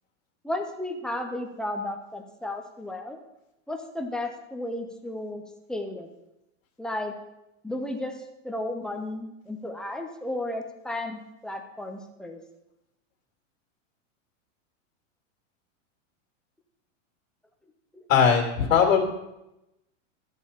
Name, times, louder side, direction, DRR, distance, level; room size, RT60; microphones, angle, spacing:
voice 1, 0.4-3.2 3.7-5.4 5.7-6.1 6.8-7.1 7.6-12.4 17.9-18.0, left 1 dB, ahead, 3 dB, 0.3 m, -33 dB
voice 2, 18.1-19.0, left 7 dB, 85° left, 2 dB, 2.4 m, -19 dB
13.0 x 7.1 x 4.2 m, 0.90 s
supercardioid pair, 145°, 38 cm